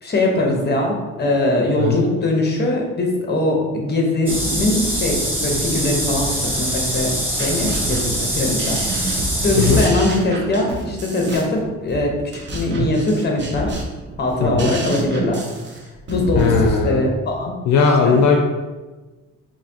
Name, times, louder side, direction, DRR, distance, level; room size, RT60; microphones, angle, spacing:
voice 1, 0.0-8.8 9.4-12.1 12.5-13.7 14.2-15.4 16.1-17.5 17.9-18.2, left 2 dB, 35° left, 0 dB, 1.0 m, -21 dB
sound 1, 4.3-9.9, right 1 dB, 5° right, 1.1 m, -23 dB
sound 2, 7.1-16.7, right 1 dB, 40° right, 0.8 m, -28 dB
voice 2, 16.3-17.0 17.7-18.4, left 5 dB, 70° left, 1 dB, 0.5 m, -17 dB
4.8 x 2.6 x 2.8 m, 1.2 s
cardioid pair, 90°, 30 cm